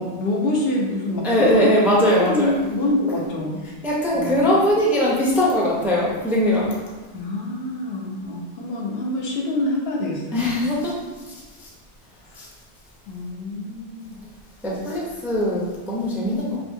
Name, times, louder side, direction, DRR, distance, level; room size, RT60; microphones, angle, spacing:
voice 1, 0.0-1.7 2.1-3.6 4.1-4.4 7.1-10.6 13.1-14.2, left 1 dB, 65° left, -2 dB, 0.9 m, -26 dB
voice 2, 1.2-2.6 3.8-6.8 10.3-11.0 11.3-11.7 12.4-12.5 14.6-16.6, equal, ahead, -5 dB, 0.5 m, -21 dB
4.7 x 2.6 x 2.7 m, 1.2 s
omnidirectional pair, 1.2 m